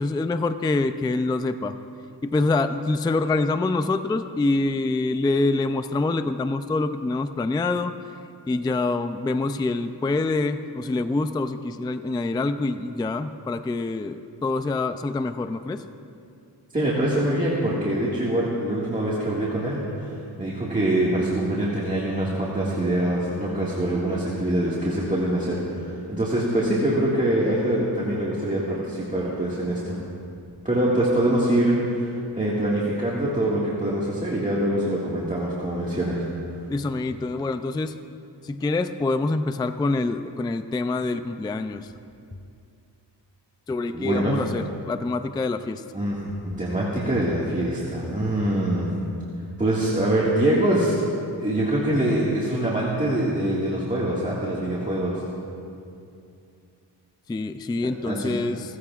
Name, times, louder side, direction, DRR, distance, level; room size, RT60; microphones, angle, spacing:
voice 1, 0.0-1.8 2.2-7.9 8.5-15.8 36.7-37.9 38.4-41.9 43.7-45.8 57.3-58.8, left 3 dB, 10° left, 10 dB, 0.3 m, -25 dB
voice 2, 16.7-30.0 30.6-36.3 43.9-44.4 45.9-46.3 46.6-48.9 49.6-50.9 51.4-55.2 58.1-58.3, right 1 dB, 20° right, -7 dB, 1.8 m, -24 dB
29.0 x 14.5 x 2.4 m, 2.5 s
wide cardioid pair, 140°, 42 cm